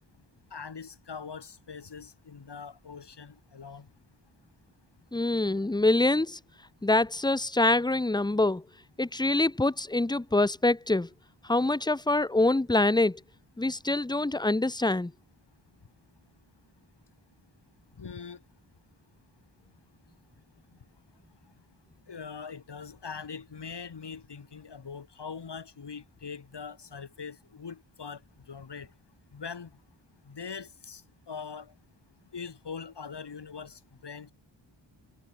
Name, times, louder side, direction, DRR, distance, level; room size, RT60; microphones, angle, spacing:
voice 1, 0.5-3.9 18.0-18.4 22.1-28.2 28.5-28.9 29.3-29.7 30.3-31.0 31.3-31.7 32.3-34.3, left 6 dB, 60° left, 3.9 m, -42 dB
voice 2, 5.1-6.4 6.8-8.6 9.0-11.1 11.4-13.2 13.6-15.1, left 2 dB, 10° left, 0.8 m, -25 dB
wide cardioid pair, 125°, 47 cm